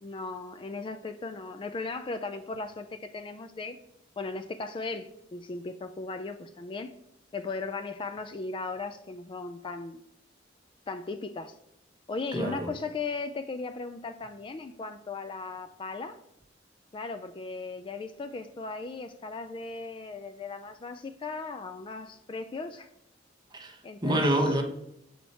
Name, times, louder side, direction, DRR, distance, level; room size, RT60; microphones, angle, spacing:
voice 1, 0.0-3.8 4.2-6.9 7.3-10.0 10.9-11.6 12.1-16.2 16.9-22.9 23.8-24.2, left 3 dB, 30° left, 0.3 m, -37 dB
voice 2, 12.3-12.7 23.5-24.6, right 1 dB, 25° right, 1.0 m, -27 dB
7.2 x 4.3 x 4.1 m
head